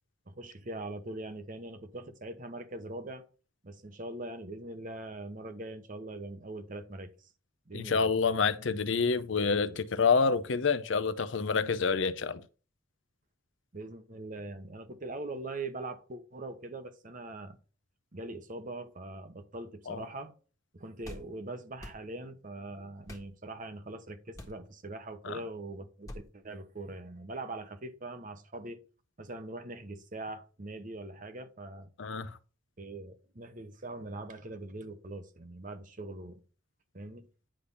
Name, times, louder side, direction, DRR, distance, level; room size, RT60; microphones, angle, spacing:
voice 1, 0.3-3.2 3.6-7.3 7.7-8.1 13.7-17.6 18.1-20.3 20.7-28.8 29.2-31.9 32.8-36.4 36.9-37.3, right 2 dB, 40° right, 1.0 m, -42 dB
voice 2, 7.7-12.4 19.9-20.0 25.2-25.4 32.0-32.3, left 5 dB, 65° left, 0.6 m, -28 dB
sound 1, 21.0-21.3 21.8-22.0 23.1-23.3 24.3-24.6 26.1-26.3, left 1 dB, 15° left, 1.5 m, -45 dB
10.0 x 3.4 x 5.5 m
head